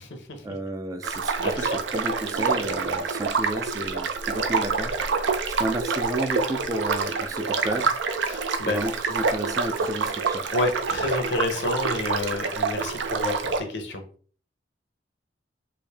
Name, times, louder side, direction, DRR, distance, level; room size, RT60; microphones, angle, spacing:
voice 1, 0.4-4.9 5.6-7.9 8.5-10.5, right 1 dB, 20° right, 0.3 m, -32 dB
sound 1, 1.0-13.6, right 4 dB, 80° right, 0.5 m, -27 dB
voice 2, 1.4-1.8 8.3-8.8 10.5-14.0, left 2 dB, 70° left, 0.8 m, -29 dB
3.2 x 2.6 x 3.3 m
head